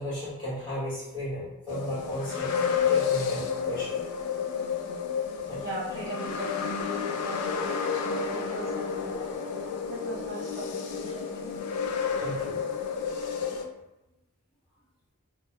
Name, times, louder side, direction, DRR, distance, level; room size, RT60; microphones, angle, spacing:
voice 1, 0.0-4.0 5.5-5.6 12.2-12.6 13.4-13.5, equal, 20° left, -10 dB, 0.9 m, -35 dB
sound 1, 1.7-13.6, left 6 dB, 85° left, 0.3 m, -30 dB
voice 2, 5.6-9.2 9.9-11.5, right 2 dB, 15° right, -11 dB, 1.0 m, -40 dB
2.2 x 2.0 x 2.8 m, 0.95 s
head